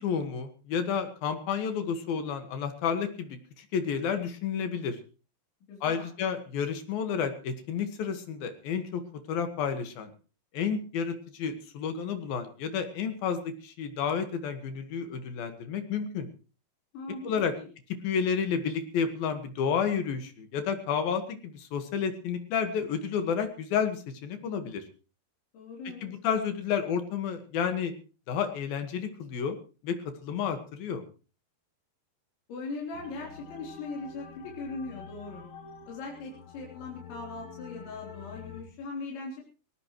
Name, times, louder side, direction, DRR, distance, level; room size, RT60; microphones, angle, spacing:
voice 1, 0.0-5.0 5.8-9.0 9.3-10.1 10.5-16.3 17.2-17.5 18.0-24.8 25.8-27.9 28.3-29.6 29.8-30.0 30.2-31.0, left 7 dB, 60° left, 8 dB, 3.2 m, -31 dB
voice 2, 5.7-6.1 16.9-17.3 17.6-17.7 25.5-26.1 32.5-35.5 35.9-39.4, left 3 dB, 85° left, -2 dB, 6.0 m, -40 dB
sound 1, 32.9-38.6, left 6 dB, 35° left, 2.7 m, -47 dB
20.0 x 18.5 x 3.1 m, 0.36 s
omnidirectional pair, 5.1 m